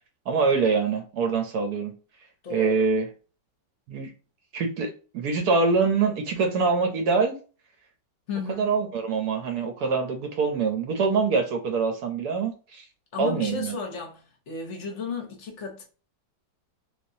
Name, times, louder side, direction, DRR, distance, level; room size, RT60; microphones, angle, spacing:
voice 1, 0.3-1.9 2.5-3.0 3.9-4.1 4.5-7.4 8.5-12.8 13.2-13.8, right 4 dB, 65° right, 1.1 m, -24 dB
voice 2, 2.4-2.9 8.3-8.7 13.1-15.8, left 4 dB, 50° left, 0.9 m, -34 dB
3.5 x 2.9 x 2.6 m
omnidirectional pair, 2.0 m